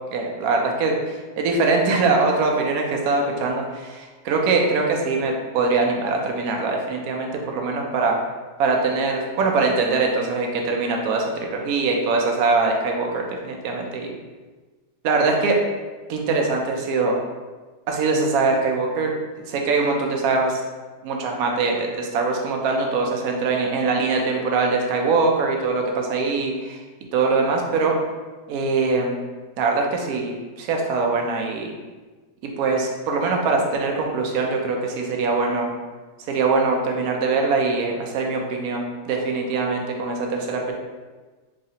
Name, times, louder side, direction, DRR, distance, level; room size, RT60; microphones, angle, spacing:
voice 1, 0.1-8.2 8.6-14.1 15.0-15.6 16.1-17.2 17.9-19.1 19.4-20.6 21.0-26.8 27.1-27.9 28.5-29.2 29.6-31.7 32.6-35.7 36.3-40.7, right 3 dB, 75° right, 1 dB, 1.1 m, -22 dB
3.8 x 3.2 x 2.7 m, 1.3 s
omnidirectional pair, 1.7 m